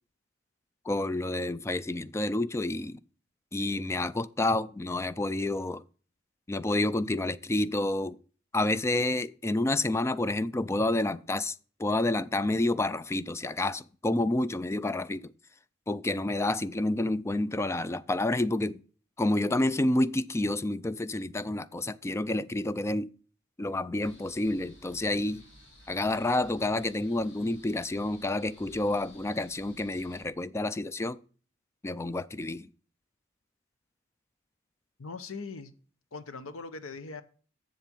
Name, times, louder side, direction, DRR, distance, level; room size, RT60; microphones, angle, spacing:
voice 1, 0.9-3.0 3.5-5.8 6.5-8.2 8.5-11.5 11.8-15.3 15.9-18.8 19.2-23.1 23.6-25.4 25.9-31.2 31.8-32.7, left 2 dB, 15° left, 0.3 m, -29 dB
sound 1, 24.0-30.2, left 1 dB, 60° left, 4.5 m, -55 dB
voice 2, 35.0-35.7 36.1-37.2, left 4 dB, 90° left, 0.9 m, -40 dB
7.5 x 7.3 x 5.3 m
head